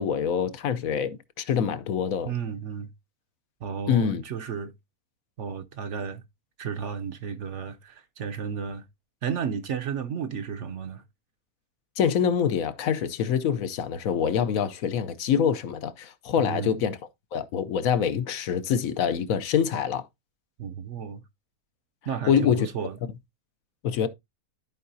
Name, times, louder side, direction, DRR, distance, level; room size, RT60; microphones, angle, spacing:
voice 1, 0.0-2.3 3.9-4.2 12.0-17.0 17.3-20.1 22.3-22.7 23.8-24.1, left 8 dB, 70° left, 1.1 m, -25 dB
voice 2, 2.3-2.9 3.6-4.7 5.4-6.2 6.6-8.8 9.2-11.0 16.4-16.8 20.6-21.2 22.1-23.0, right 7 dB, 60° right, 0.9 m, -33 dB
13.0 x 4.7 x 2.6 m
omnidirectional pair, 1.6 m